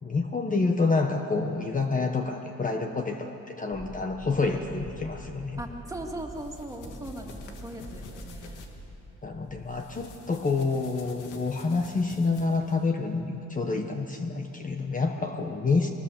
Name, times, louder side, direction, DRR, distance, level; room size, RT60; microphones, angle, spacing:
voice 1, 0.0-5.6 9.2-15.9, left 3 dB, 25° left, 4 dB, 1.3 m, -28 dB
sound 1, 3.7-10.2, right 1 dB, 10° left, 3.0 m, -45 dB
voice 2, 5.6-8.7, right 1 dB, 10° right, 1 dB, 2.7 m, -39 dB
sound 2, 6.2-8.7 9.7-12.9, left 4 dB, 90° left, 2.3 m, -48 dB
22.5 x 19.0 x 7.2 m, 3.0 s
cardioid pair, 90°, 30 cm